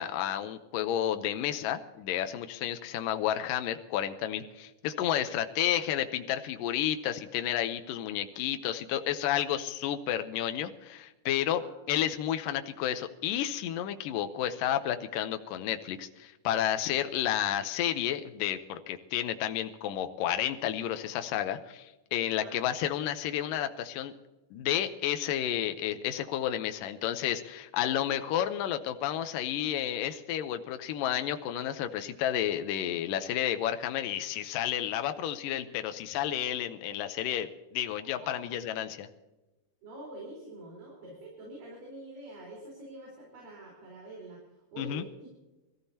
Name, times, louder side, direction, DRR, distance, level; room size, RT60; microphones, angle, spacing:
voice 1, 0.0-11.6 11.9-24.1 24.5-39.1 44.8-45.0, left 11 dB, 80° left, 7 dB, 2.5 m, -31 dB
voice 2, 39.8-44.4 44.7-45.3, right 1 dB, 70° right, -2 dB, 5.9 m, -46 dB
26.0 x 15.0 x 2.9 m, 1.0 s
omnidirectional pair, 4.0 m